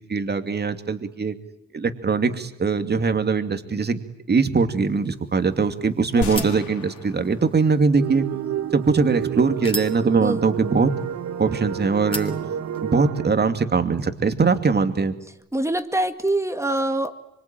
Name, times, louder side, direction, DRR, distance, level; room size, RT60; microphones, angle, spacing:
voice 1, 0.0-1.3 1.7-4.0 4.3-8.3 8.7-10.9 11.4-12.4 12.8-15.1, right 4 dB, 35° right, 8 dB, 2.6 m, -21 dB
sound 1, 4.8-13.1, left 1 dB, 20° left, 3.9 m, -40 dB
sound 2, 6.2-8.5, left 6 dB, 70° left, 3.0 m, -36 dB
sound 3, 8.0-13.3, right 9 dB, 60° right, 1.4 m, -30 dB
voice 2, 15.5-17.1, right 1 dB, 10° right, 8 dB, 1.9 m, -24 dB
25.0 x 24.5 x 9.1 m, 0.84 s
cardioid pair, 90°, 30 cm